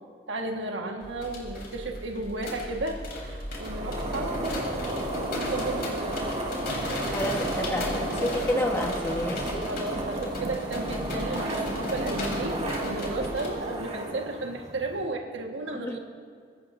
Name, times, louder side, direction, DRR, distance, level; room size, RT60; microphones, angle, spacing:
voice 1, 0.3-5.0 5.3-6.2 9.7-16.0, right 2 dB, 80° right, 2 dB, 1.6 m, -34 dB
sound 1, 1.0-13.5, left 1 dB, 55° left, 3.8 m, -37 dB
sound 2, 3.5-15.0, right 1 dB, 35° right, 2.2 m, -32 dB
voice 2, 7.1-9.7 15.7-16.0, equal, 15° left, 2 dB, 1.3 m, -30 dB
22.0 x 17.5 x 2.7 m, 2.1 s
head